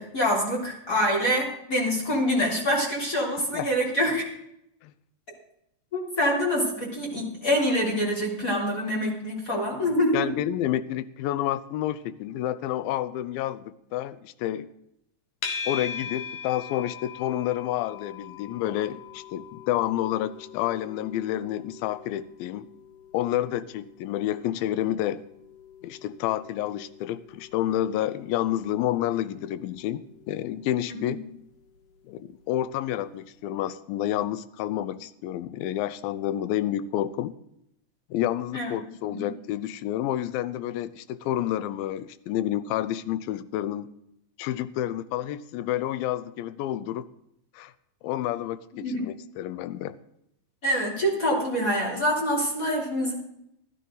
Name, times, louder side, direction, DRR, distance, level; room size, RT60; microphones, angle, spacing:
voice 1, 0.0-4.2 5.9-10.3 30.9-31.2 38.5-38.7 39.1-39.3 48.7-49.0 50.6-53.1, equal, 20° left, -2 dB, 3.3 m, -25 dB
voice 2, 10.1-14.7 15.7-22.7 23.1-25.2 25.8-31.2 32.1-37.3 38.1-43.9 44.4-47.1 47.5-47.7 48.0-50.0, left 12 dB, 80° left, 16 dB, 2.3 m, -29 dB
sound 1, 15.4-32.6, left 6 dB, 60° left, 2.8 m, -42 dB
13.5 x 13.5 x 4.0 m, 0.76 s
omnidirectional pair, 4.5 m